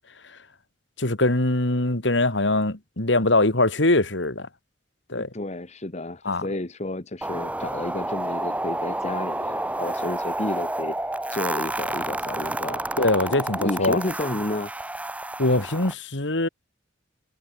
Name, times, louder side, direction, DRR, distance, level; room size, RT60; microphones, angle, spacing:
voice 1, 1.0-4.5 5.1-5.3 6.2-6.5 13.0-14.0 15.4-16.5, left 2 dB, 70° left, 2.7 m, -22 dB
voice 2, 5.1-11.0 11.3-12.8 13.3-14.7, left 2 dB, 35° left, 1.2 m, -31 dB
sound 1, 7.2-15.9, right 1 dB, 5° right, 0.7 m, -30 dB
head